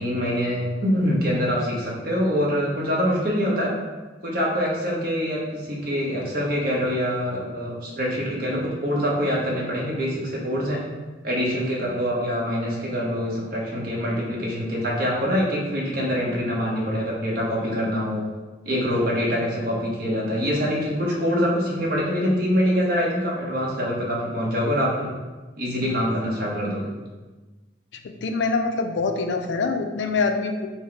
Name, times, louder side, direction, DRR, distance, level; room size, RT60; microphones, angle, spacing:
voice 1, 0.0-3.7 4.2-10.8 11.2-18.2 18.6-25.1 25.6-26.9, equal, 55° right, -4 dB, 1.1 m, -24 dB
voice 2, 28.0-30.7, left 4 dB, 75° left, 5 dB, 0.4 m, -25 dB
4.4 x 2.2 x 4.6 m, 1.3 s
head